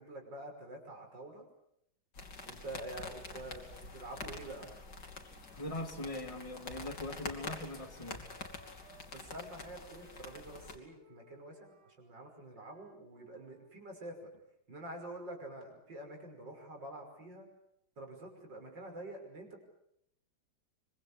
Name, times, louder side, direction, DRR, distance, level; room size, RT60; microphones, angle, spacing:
voice 1, 0.0-1.5 2.4-4.7 9.1-14.3 14.7-17.5 18.0-19.6, right 1 dB, 65° right, 3 dB, 6.4 m, -47 dB
sound 1, 2.1-10.8, left 3 dB, 60° left, 3.5 m, -47 dB
Wind instrument woodwind instrument, 5.2-9.1 9.4-13.7, right 1 dB, 30° right, 4.2 m, -63 dB
voice 2, 5.5-8.2, left 1 dB, 15° left, 4 dB, 2.6 m, -41 dB
25.0 x 24.0 x 8.3 m, 0.73 s
omnidirectional pair, 2.1 m